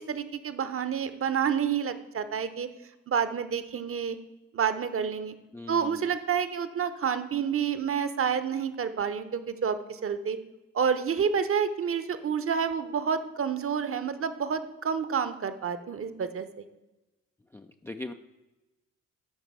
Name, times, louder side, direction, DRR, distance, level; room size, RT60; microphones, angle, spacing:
voice 1, 0.0-2.7 3.1-4.2 4.5-5.3 5.7-10.4 10.7-16.6, right 7 dB, 30° right, 11 dB, 0.9 m, -29 dB
voice 2, 5.5-6.0 17.5-18.1, left 2 dB, 5° left, 6 dB, 0.4 m, -40 dB
12.5 x 5.4 x 3.7 m, 1.1 s
figure-of-eight pair, 40°, 41 cm